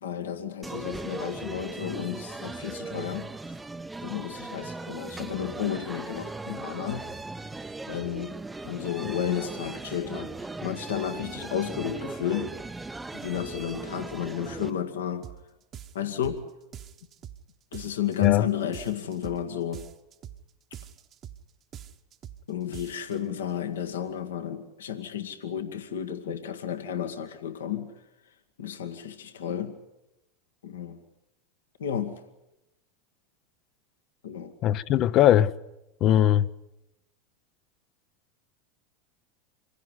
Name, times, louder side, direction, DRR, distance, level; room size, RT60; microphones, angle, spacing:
voice 1, 0.0-3.3 4.0-7.0 7.9-8.4 8.6-10.3 10.6-12.5 13.1-15.3 15.9-16.4 17.7-19.9 22.5-27.9 28.6-29.8 30.6-31.0 31.8-32.2 34.2-34.5, left 9 dB, 80° left, 1.8 m, -32 dB
sound 1, 0.6-14.7, right 3 dB, 10° right, 0.8 m, -38 dB
sound 2, 15.2-15.4 15.7-16.4 16.7-17.4 17.7-18.4 18.7-19.4 19.7-20.4 20.7-21.4 21.7-22.4 22.7-23.2, right 10 dB, 40° right, 1.3 m, -44 dB
voice 2, 34.6-35.5 36.0-36.5, left 11 dB, 45° left, 0.8 m, -20 dB
25.5 x 16.5 x 9.7 m
hypercardioid pair, 85°, 0 cm